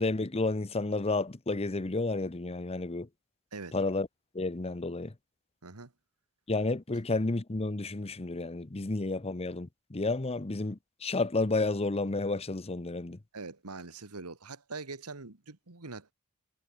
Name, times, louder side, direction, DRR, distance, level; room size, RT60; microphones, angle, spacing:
voice 1, 0.0-3.1 3.7-4.1 4.3-5.1 6.5-13.2, left 3 dB, 25° left, 0.8 m, -31 dB
voice 2, 13.3-16.1, right 3 dB, 85° right, 1.8 m, -43 dB
head